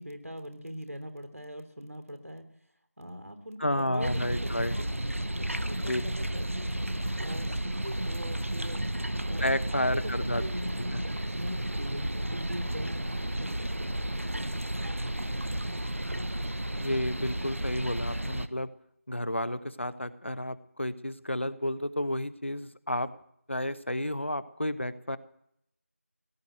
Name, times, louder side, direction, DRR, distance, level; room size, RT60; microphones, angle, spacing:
voice 1, 0.0-2.5 3.0-6.8 7.2-8.8 9.2-14.0, equal, 80° right, 7 dB, 3.2 m, -42 dB
voice 2, 3.6-4.7 5.8-6.0 9.4-10.4 10.9-11.0 16.8-18.7 19.1-23.1 23.5-25.2, left 1 dB, 55° left, 13 dB, 1.0 m, -31 dB
sound 1, 4.0-18.5, right 1 dB, 65° right, 1.0 m, -32 dB
sound 2, 11.1-14.8, equal, 35° right, 1.7 m, -49 dB
17.5 x 11.0 x 7.7 m, 0.72 s
figure-of-eight pair, 180°, 8 cm